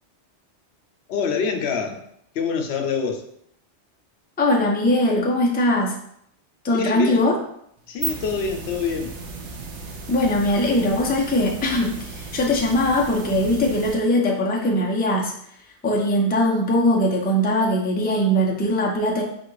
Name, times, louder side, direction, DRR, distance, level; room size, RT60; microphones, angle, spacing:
voice 1, 1.1-2.0 2.3-3.3 6.7-7.3 7.9-9.1, left 5 dB, 70° left, 4 dB, 0.9 m, -25 dB
voice 2, 4.4-6.0 6.6-7.3 10.1-15.3 15.8-19.2, left 1 dB, 10° left, -1 dB, 0.4 m, -21 dB
sound 1, 7.8-13.9, right 4 dB, 85° right, 1.0 m, -35 dB
4.2 x 2.4 x 4.6 m, 0.71 s
omnidirectional pair, 1.1 m